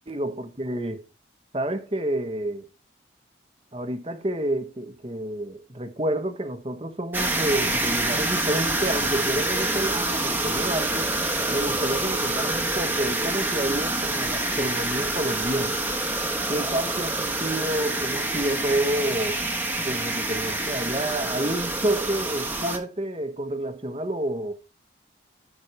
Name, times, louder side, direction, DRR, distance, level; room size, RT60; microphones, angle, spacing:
voice 1, 0.1-1.0 1.5-2.7 3.7-11.1 11.5-15.8 16.5-19.4 19.8-24.5, right 1 dB, 30° right, 1.0 m, -29 dB
sound 1, 7.1-22.8, right 2 dB, 10° right, 1.1 m, -27 dB
14.5 x 5.4 x 3.2 m
head